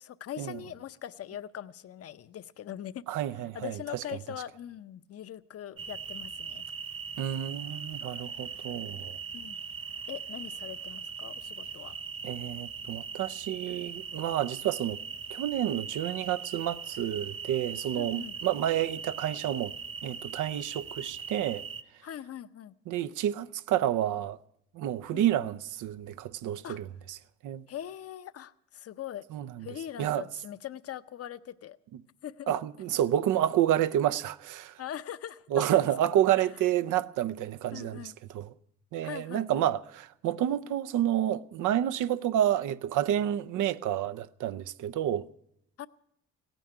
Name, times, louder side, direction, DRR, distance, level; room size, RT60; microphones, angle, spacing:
voice 1, 0.0-3.1 3.5-6.6 9.3-9.6 10.1-12.0 17.9-18.4 22.0-22.7 25.1-25.3 26.6-26.8 27.7-29.2 29.6-31.8 32.2-32.5 34.8-35.9 36.4-36.5 37.7-38.2 39.0-39.7 45.8-45.9, left 11 dB, 50° left, 0.7 m, -41 dB
voice 2, 3.1-4.0 7.2-9.2 12.2-15.0 15.3-19.7 20.0-21.7 22.9-24.4 24.7-27.2 27.4-27.6 29.3-29.7 30.0-30.2 32.5-34.8 35.5-38.5 38.9-45.3, right 11 dB, 80° right, 0.6 m, -29 dB
sound 1, 5.8-21.8, right 6 dB, 40° right, 1.3 m, -40 dB
16.5 x 9.2 x 9.4 m
cardioid pair, 90°, 30 cm